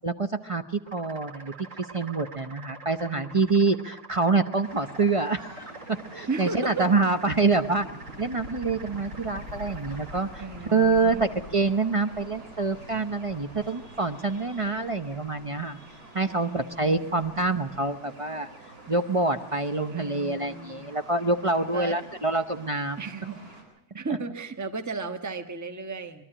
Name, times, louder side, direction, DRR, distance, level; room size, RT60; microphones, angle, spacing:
voice 1, 0.0-0.6 0.9-1.5 1.9-7.9 8.2-10.4 10.7-15.8 16.1-18.5 18.9-23.0 24.1-24.2, right 3 dB, 35° right, 8 dB, 0.5 m, -26 dB
sound 1, 0.9-19.6, right 1 dB, 55° right, 3.0 m, -46 dB
voice 2, 3.0-3.5 6.3-6.9 10.4-11.2 16.3-17.0 19.9-20.9 21.6-22.0 23.0-23.4 23.9-26.2, right 4 dB, 10° right, 7 dB, 1.1 m, -35 dB
sound 2, 4.6-23.6, right 1 dB, 85° right, 6.6 m, -48 dB
22.5 x 13.0 x 9.9 m, 0.83 s
omnidirectional pair, 1.7 m